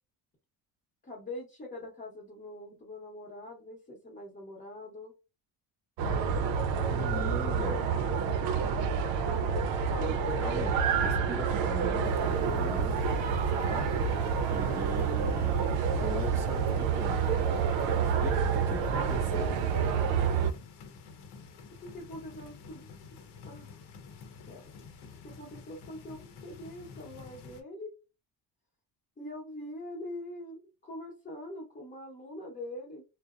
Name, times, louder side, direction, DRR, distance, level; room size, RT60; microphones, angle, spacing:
voice 1, 1.0-5.1 6.3-6.7 7.2-9.3 21.8-22.9 23.4-23.8 24.5-24.8 25.2-27.9 29.2-33.0, left 1 dB, 20° left, 0.9 m, -44 dB
sound 1, 6.0-20.5, right 6 dB, 80° right, 0.5 m, -28 dB
voice 2, 6.9-7.9 9.7-13.0 13.5-13.9 14.5-15.6 15.9-17.4 18.0-19.5, right 1 dB, 5° right, 0.3 m, -40 dB
sound 2, 12.0-27.6, left 5 dB, 60° left, 0.7 m, -49 dB
2.7 x 2.0 x 2.4 m
cardioid pair, 130°, 44 cm